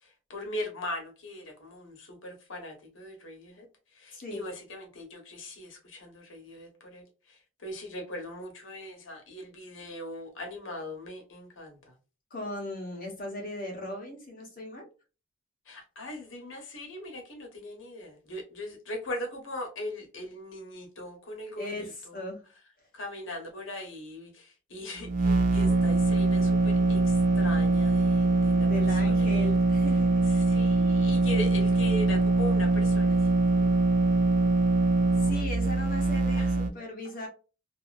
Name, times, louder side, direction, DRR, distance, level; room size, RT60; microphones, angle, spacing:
voice 1, 0.0-3.7 3.9-11.9 15.7-22.2 22.9-29.6 30.3-33.9 36.3-36.5, left 1 dB, 80° left, 1.1 m, -40 dB
voice 2, 4.1-4.4 12.3-14.9 21.5-22.4 28.6-30.2 35.2-37.3, left 1 dB, 45° left, 1.1 m, -38 dB
sound 1, 25.0-36.7, right 3 dB, 45° right, 0.4 m, -23 dB
2.8 x 2.7 x 2.4 m
head